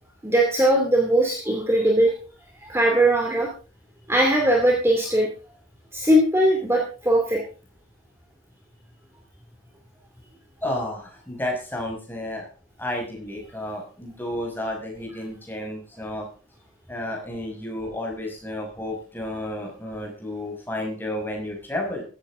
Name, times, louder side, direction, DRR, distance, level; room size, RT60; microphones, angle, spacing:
voice 1, 0.2-2.1 2.6-3.5 4.1-5.3 5.9-7.4, right 1 dB, 10° right, 0 dB, 2.6 m, -20 dB
voice 2, 10.6-12.5 12.8-16.3 16.9-22.0, left 1 dB, 10° left, 0 dB, 5.8 m, -31 dB
16.0 x 13.5 x 3.8 m, 0.37 s
head